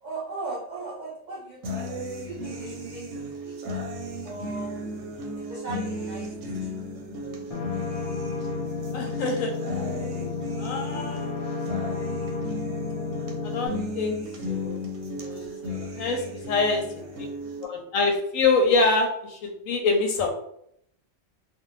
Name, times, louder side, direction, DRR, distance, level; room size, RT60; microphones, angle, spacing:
voice 1, 0.0-3.0 3.4-4.7 5.3-6.7 16.2-16.6 16.9-17.3, right 3 dB, 85° right, -2 dB, 0.4 m, -39 dB
sound 1, 1.6-17.6, equal, 70° right, 0.8 m, -35 dB
sound 2, 7.5-13.7, left 5 dB, 55° left, 0.4 m, -32 dB
voice 2, 8.9-9.5 10.6-12.0 13.4-14.2 14.5-14.8 15.2-16.8 17.7-20.3, left 3 dB, 85° left, 3 dB, 1.0 m, -26 dB
2.6 x 2.1 x 3.0 m, 0.72 s
omnidirectional pair, 1.4 m